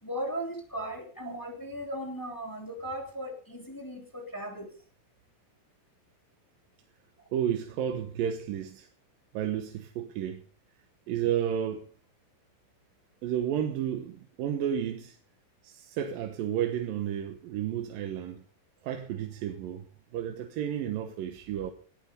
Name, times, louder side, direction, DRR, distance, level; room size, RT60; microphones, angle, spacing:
voice 1, 0.0-4.7 7.2-7.3, equal, 5° left, 2.5 m, -37 dB
voice 2, 7.3-8.9 9.3-10.4 11.1-11.9 13.2-15.2 15.6-18.4 18.8-19.9 20.1-21.7, right 9 dB, 75° right, 2.8 m, -32 dB
18.5 x 10.5 x 5.3 m
omnidirectional pair, 4.2 m